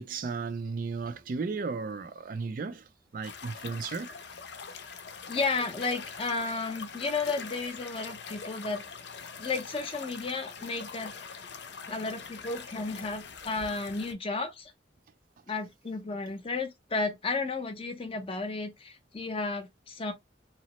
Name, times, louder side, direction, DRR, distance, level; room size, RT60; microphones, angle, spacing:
voice 1, 0.0-4.1, right 4 dB, 50° right, 0.3 m, -35 dB
sound 1, 3.2-14.1, left 5 dB, 75° left, 0.5 m, -43 dB
voice 2, 5.3-8.8 9.4-11.4 11.9-14.7 15.5-20.1, left 3 dB, 30° left, 0.6 m, -33 dB
2.9 x 2.0 x 2.9 m
head